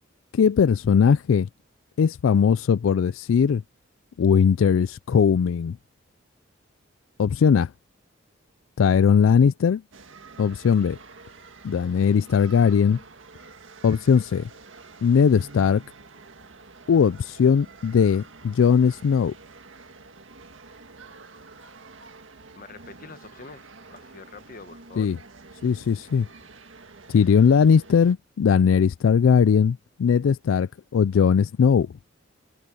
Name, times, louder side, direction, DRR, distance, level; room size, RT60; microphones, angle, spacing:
voice 1, 0.3-1.5 2.0-3.6 4.2-5.8 7.2-7.7 8.8-9.8 10.4-11.0 11.6-13.0 13.8-14.5 15.0-15.8 16.9-19.3 25.0-25.2 25.6-26.3 27.1-31.9, left 6 dB, 90° left, 0.4 m, -19 dB
sound 1, 9.9-28.1, right 3 dB, 75° right, 1.8 m, -48 dB
voice 2, 22.5-25.1, left 4 dB, 45° left, 1.1 m, -45 dB
head